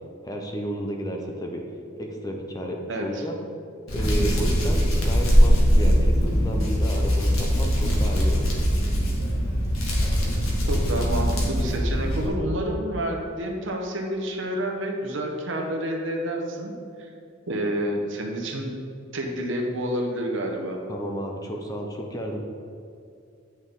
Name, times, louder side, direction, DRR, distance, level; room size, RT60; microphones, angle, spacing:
voice 1, 0.2-1.6 2.0-3.4 3.9-8.5 20.9-22.4, right 1 dB, 15° left, 1 dB, 0.7 m, -32 dB
voice 2, 2.9-3.2 10.7-16.7 17.0-17.1 17.5-18.7 19.1-20.8, right 1 dB, 65° right, 1 dB, 1.0 m, -29 dB
Hands, 3.9-12.3, equal, 85° left, 1.8 m, -21 dB
8.7 x 6.3 x 3.7 m, 2.5 s
head